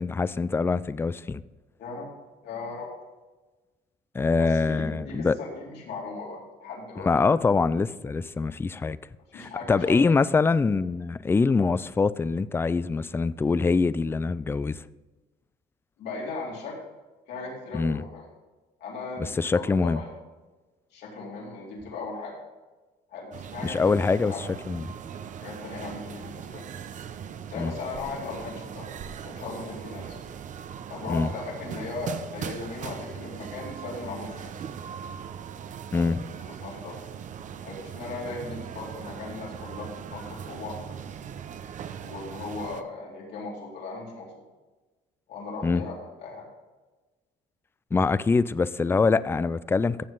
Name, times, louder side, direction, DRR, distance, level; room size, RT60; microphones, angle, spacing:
voice 1, 0.0-1.4 4.1-5.4 7.0-9.0 9.3-14.8 17.7-18.0 19.3-20.0 23.6-24.9 27.6-27.7 31.1-31.3 35.9-36.2 45.6-45.8 47.9-50.0, left 4 dB, 15° left, 0.3 m, -24 dB
voice 2, 2.4-2.9 4.4-7.1 9.3-10.1 16.0-16.8 17.3-18.3 18.8-20.1 20.9-22.4 23.1-24.4 25.4-26.7 27.5-28.9 29.2-30.2 30.9-34.6 35.9-36.1 36.4-37.0 37.6-40.8 42.0-44.3 45.3-46.5, left 3 dB, 75° left, 4.2 m, -37 dB
sound 1, 23.3-42.8, right 8 dB, 50° right, 0.7 m, -40 dB
14.5 x 7.3 x 3.9 m
cardioid pair, 110°, 17 cm